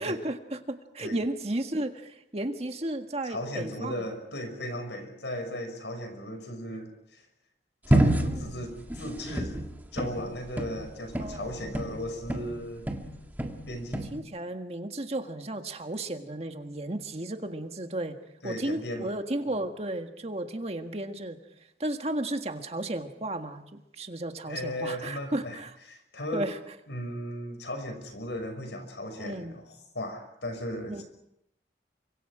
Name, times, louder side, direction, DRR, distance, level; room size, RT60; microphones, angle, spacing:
voice 1, 0.0-4.1 8.0-8.7 11.2-11.7 14.1-18.2 18.4-21.4 21.8-23.6 23.9-25.7 26.3-26.6 29.2-29.5 30.9-31.0, right 1 dB, 35° right, 6 dB, 1.7 m, -34 dB
voice 2, 3.2-7.2 7.9-9.5 9.9-12.9 13.7-14.1 18.4-19.1 24.5-25.6 25.9-26.5 26.9-31.0, equal, 80° left, 6 dB, 6.0 m, -36 dB
sound 1, 7.9-12.6 12.9-14.2, right 1 dB, 10° right, 1.8 m, -28 dB
30.0 x 25.0 x 5.0 m, 0.80 s
head